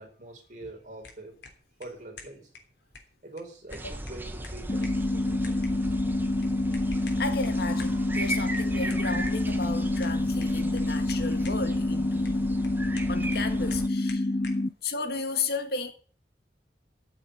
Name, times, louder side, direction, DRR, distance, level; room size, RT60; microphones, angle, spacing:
voice 1, 0.0-1.3 1.8-2.5 3.2-6.1 14.3-14.7, right 2 dB, 45° right, 4.2 m, -45 dB
sound 1, 0.8-14.7, left 4 dB, 80° left, 3.3 m, -51 dB
sound 2, 3.7-13.9, right 1 dB, 10° right, 1.3 m, -37 dB
sound 3, 4.7-14.7, left 2 dB, 35° left, 0.8 m, -27 dB
voice 2, 7.2-12.4 13.1-14.3 14.8-15.9, left 4 dB, 65° left, 1.9 m, -34 dB
13.5 x 7.2 x 8.1 m
head